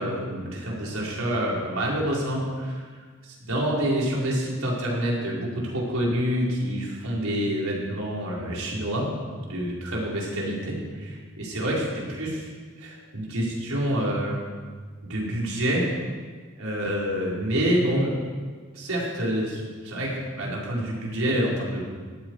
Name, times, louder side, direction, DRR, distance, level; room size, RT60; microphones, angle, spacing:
voice 1, 0.0-2.8 3.2-9.1 9.4-12.5 12.8-14.4 15.0-15.9 16.6-18.1 18.7-21.8, equal, 80° right, -4 dB, 4.8 m, -27 dB
18.0 x 14.0 x 4.9 m, 1.5 s
head